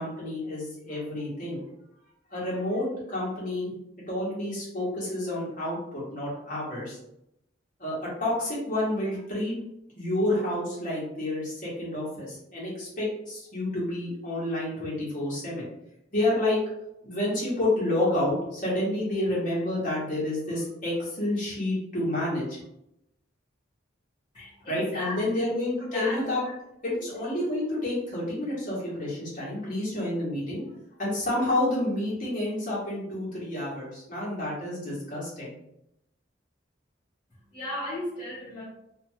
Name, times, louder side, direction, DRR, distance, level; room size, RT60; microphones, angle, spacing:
voice 1, 0.0-1.6 2.3-3.7 4.1-7.0 7.8-9.5 10.0-15.6 16.1-16.6 17.0-22.6 24.7-26.4 26.8-30.6 31.0-35.5, left 1 dB, 40° left, -7 dB, 1.3 m, -29 dB
voice 2, 24.3-25.6 25.9-26.5 26.9-27.0 37.3-38.7, left 1 dB, 25° left, -11 dB, 0.8 m, -36 dB
2.7 x 2.3 x 2.8 m, 0.81 s
head